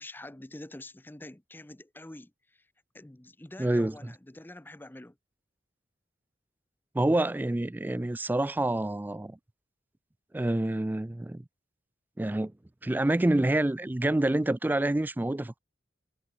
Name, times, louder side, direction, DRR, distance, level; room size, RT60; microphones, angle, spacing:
voice 1, 0.0-2.7 2.9-5.2, left 1 dB, 10° left, 0.7 m, -46 dB
voice 2, 3.6-4.1 6.9-9.4 10.3-11.4 12.2-12.5 12.8-15.6, right 1 dB, 10° right, 0.3 m, -27 dB
head